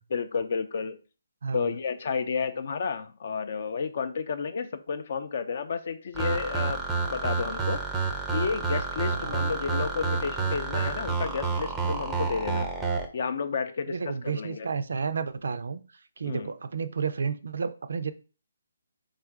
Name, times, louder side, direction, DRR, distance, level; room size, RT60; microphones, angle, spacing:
voice 1, 0.1-1.0 1.5-6.8 7.1-7.8 8.3-12.7 13.1-14.0 14.2-14.7 16.2-16.5, left 5 dB, 50° left, 0.4 m, -31 dB
voice 2, 1.4-1.7 9.1-9.4 13.9-18.1, right 5 dB, 70° right, 0.4 m, -32 dB
sound 1, 6.2-13.1, right 4 dB, 5° right, 0.5 m, -29 dB
3.5 x 2.4 x 4.5 m
hypercardioid pair, 160°, 0 cm